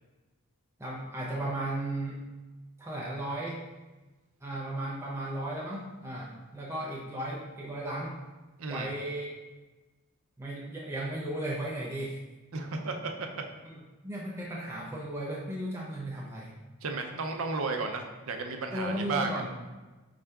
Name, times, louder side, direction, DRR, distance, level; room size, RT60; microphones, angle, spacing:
voice 1, 0.8-2.2 2.8-3.6 4.4-8.2 8.7-9.4 10.4-12.2 13.6-13.8 14.0-16.5 18.7-19.5, right 1 dB, 10° right, -5 dB, 0.5 m, -35 dB
voice 2, 12.5-13.4 16.8-19.4, right 3 dB, 70° right, 4 dB, 0.5 m, -33 dB
5.5 x 2.5 x 3.3 m, 1.2 s
head